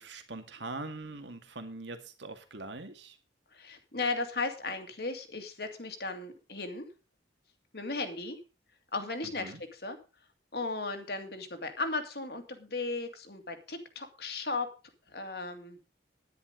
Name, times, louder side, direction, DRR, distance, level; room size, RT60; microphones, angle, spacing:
voice 1, 0.0-3.2 9.4-9.6, right 2 dB, 75° right, 7 dB, 2.1 m, -42 dB
voice 2, 3.5-6.9 7.7-8.4 8.9-10.0 10.5-14.7 15.1-15.8, left 3 dB, 55° left, 6 dB, 2.2 m, -36 dB
10.5 x 10.5 x 5.1 m, 0.32 s
head